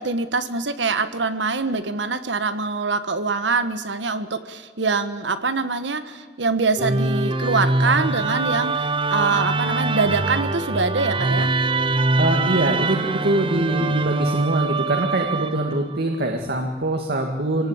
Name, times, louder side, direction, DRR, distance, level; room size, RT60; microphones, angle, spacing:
voice 1, 0.0-11.5, right 4 dB, 85° right, 11 dB, 1.3 m, -24 dB
Musical instrument, 6.8-16.0, right 3 dB, 30° right, 0.8 m, -23 dB
voice 2, 12.2-17.7, right 1 dB, 60° right, 2 dB, 2.1 m, -23 dB
25.5 x 18.5 x 8.7 m, 1.6 s
head